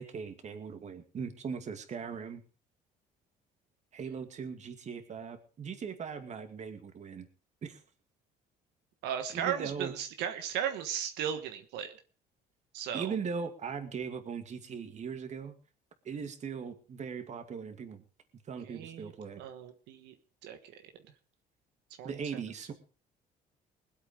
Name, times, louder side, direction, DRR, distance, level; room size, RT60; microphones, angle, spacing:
voice 1, 0.0-2.4 3.9-7.3 7.6-7.8 9.3-9.9 12.9-15.6 16.0-18.0 18.5-19.4 22.0-22.7, right 6 dB, 45° right, 8 dB, 2.3 m, -39 dB
voice 2, 9.0-11.9 12.7-13.1 18.6-19.1 19.4-20.1 20.4-20.6 22.0-22.4, right 9 dB, 90° right, 7 dB, 1.4 m, -36 dB
20.5 x 8.3 x 5.2 m, 0.36 s
cardioid pair, 110°, 17 cm